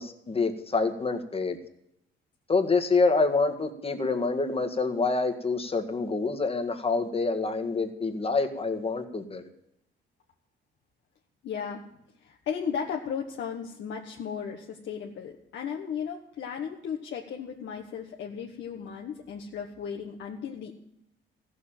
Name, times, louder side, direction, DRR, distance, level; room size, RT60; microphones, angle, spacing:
voice 1, 0.0-1.6 2.5-9.4, left 3 dB, 30° left, 6 dB, 1.8 m, -27 dB
voice 2, 11.4-11.8 12.2-20.7, left 7 dB, 70° left, 0 dB, 1.5 m, -35 dB
14.5 x 7.0 x 9.0 m, 0.81 s
cardioid pair, 90°, 20 cm